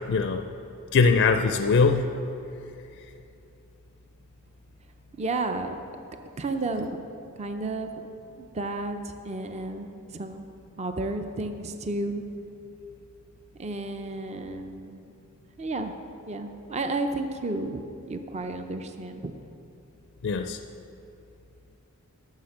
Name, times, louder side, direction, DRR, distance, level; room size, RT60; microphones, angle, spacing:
voice 1, 0.1-0.4 0.9-2.1 20.2-20.6, left 4 dB, 55° left, 7 dB, 0.4 m, -21 dB
voice 2, 5.1-5.8 6.4-7.0 7.4-7.9 8.4-9.0 9.2-10.4 10.8-12.2 13.6-15.0 15.6-15.9 16.3-19.3, right 2 dB, 30° right, 7 dB, 0.5 m, -32 dB
11.5 x 6.6 x 6.3 m, 2.8 s
head